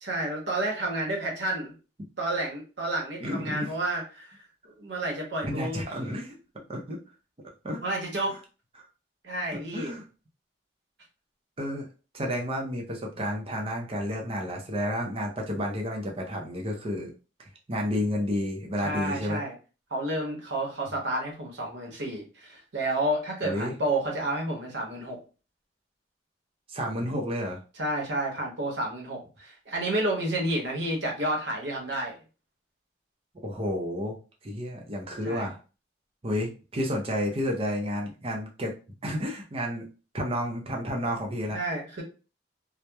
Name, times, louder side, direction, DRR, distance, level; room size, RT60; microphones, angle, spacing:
voice 1, 0.0-1.7 2.2-4.4 4.8-5.8 7.8-8.3 9.2-10.0 18.8-19.5 19.9-25.2 27.8-32.2 35.2-35.5 41.5-42.0, right 1 dB, 75° right, 0 dB, 0.9 m, -30 dB
voice 2, 3.2-3.7 5.4-6.3 6.7-7.0 7.6-7.8 8.8-8.9 9.5-10.0 11.6-11.9 12.1-17.1 17.4-19.4 23.4-23.7 26.7-27.6 33.4-34.2 34.4-35.6 36.2-38.7 39.0-39.9 40.1-41.6, equal, 30° right, 1 dB, 0.5 m, -31 dB
2.9 x 2.1 x 2.2 m, 0.34 s
head